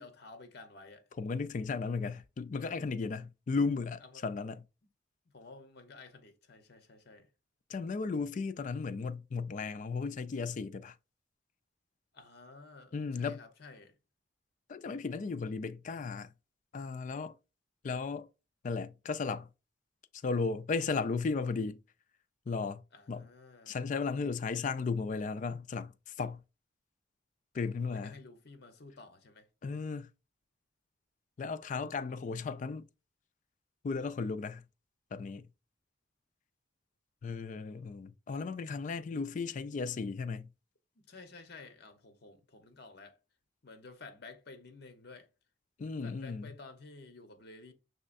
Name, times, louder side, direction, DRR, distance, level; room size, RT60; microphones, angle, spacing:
voice 1, 0.0-1.1 4.0-4.2 5.3-7.3 12.1-14.0 22.9-23.8 27.9-29.5 40.9-43.2 43.6-45.3 46.0-47.7, left 3 dB, 60° left, 0.9 m, -52 dB
voice 2, 1.2-4.6 7.7-11.0 12.9-13.4 14.7-16.3 16.7-17.3 17.8-18.3 18.6-19.5 20.2-21.8 22.5-22.8 23.1-23.3 23.7-26.4 27.5-28.1 29.6-30.1 31.4-32.9 33.8-34.6 35.1-35.5 37.2-40.5 45.8-46.5, left 4 dB, 45° left, 0.3 m, -35 dB
5.6 x 3.2 x 2.5 m
head